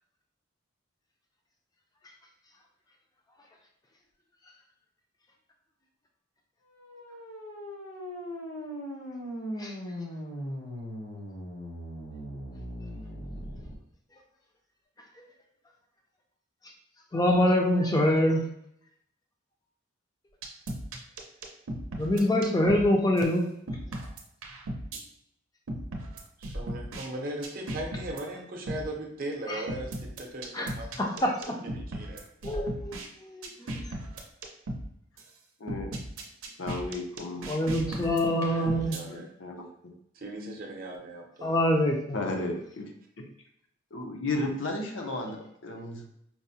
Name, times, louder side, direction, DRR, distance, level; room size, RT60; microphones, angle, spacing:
sound 1, 6.6-13.7, equal, 90° left, 0.9 m, -39 dB
voice 1, 17.1-18.4 22.0-23.5 29.5-29.6 30.5-30.7 31.0-31.3 32.4-33.8 37.5-39.0 41.4-42.2, left 1 dB, 20° left, 1 dB, 0.4 m, -25 dB
sound 2, 20.4-22.9 23.2-23.3 23.7-25.0 25.7-27.1 27.4-28.2 28.7-28.9 29.7-33.1 33.4-34.9 35.2-35.3 35.7-39.0, right 1 dB, 90° right, 0.6 m, -36 dB
voice 2, 26.4-32.5 37.9-39.3 40.1-41.5, right 1 dB, 45° right, 1 dB, 0.6 m, -39 dB
voice 3, 35.6-35.9 36.6-37.5 39.1-39.7 42.1-42.9 43.2-43.3 43.9-46.1, left 2 dB, 70° left, 2 dB, 0.6 m, -34 dB
4.6 x 2.0 x 2.7 m, 0.73 s
head